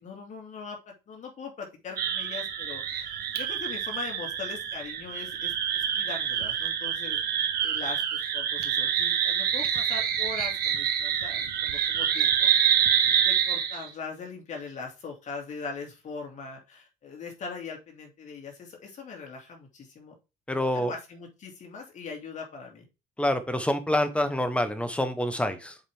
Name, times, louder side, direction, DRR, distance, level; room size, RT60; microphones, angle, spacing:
voice 1, 0.0-12.5 13.2-20.1 20.7-22.8, left 4 dB, 45° left, 2 dB, 2.6 m, -41 dB
sound 1, 2.0-13.9, right 9 dB, 65° right, 1.4 m, -27 dB
voice 2, 20.5-20.9 23.2-25.8, left 1 dB, 5° left, 9 dB, 1.2 m, -27 dB
7.3 x 5.0 x 3.6 m, 0.28 s
cardioid pair, 110°, 17 cm